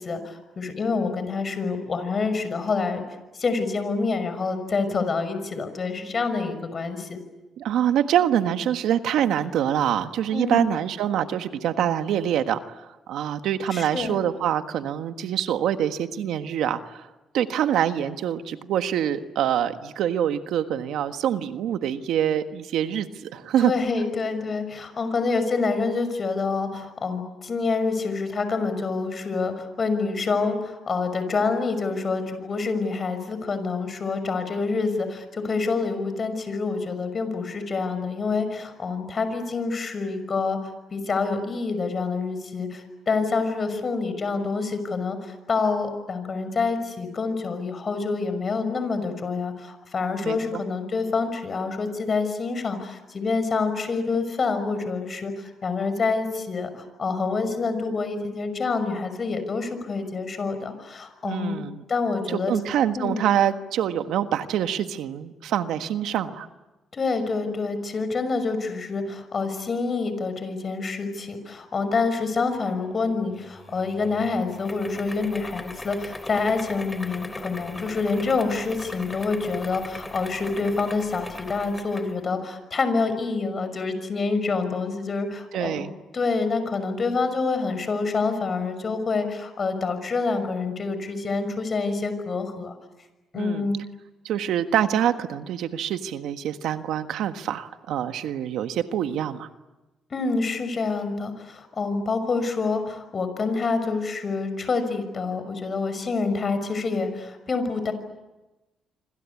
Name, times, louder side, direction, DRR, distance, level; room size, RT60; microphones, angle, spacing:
voice 1, 0.0-3.0 3.3-7.2 10.3-10.6 13.7-14.2 23.6-61.6 61.9-62.6 63.0-63.2 66.9-85.8 86.1-92.7 93.3-93.8 100.1-107.9, left 4 dB, 40° left, 10 dB, 6.0 m, -27 dB
voice 2, 7.6-17.1 17.3-23.7 50.2-50.6 61.2-61.8 62.3-66.5 85.5-85.9 93.3-93.7 94.2-99.5, right 10 dB, 80° right, 8 dB, 1.5 m, -25 dB
sound 1, 73.4-82.2, left 2 dB, 15° left, 3.2 m, -39 dB
26.5 x 26.0 x 8.5 m, 1.1 s
cardioid pair, 90°, 0 cm